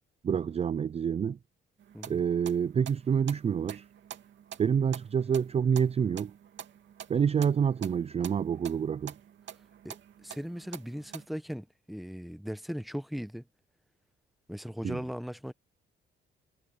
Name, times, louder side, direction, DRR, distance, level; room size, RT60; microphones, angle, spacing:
voice 1, 0.2-1.4 2.1-3.9 4.6-6.3 7.1-9.1 14.8-15.0, right 7 dB, 30° right, 0.4 m, -27 dB
sound 1, 1.8-11.2, right 9 dB, 65° right, 2.5 m, -47 dB
voice 2, 9.8-13.5 14.5-15.5, equal, ahead, 1.0 m, -38 dB
cardioid pair, 90°, 20 cm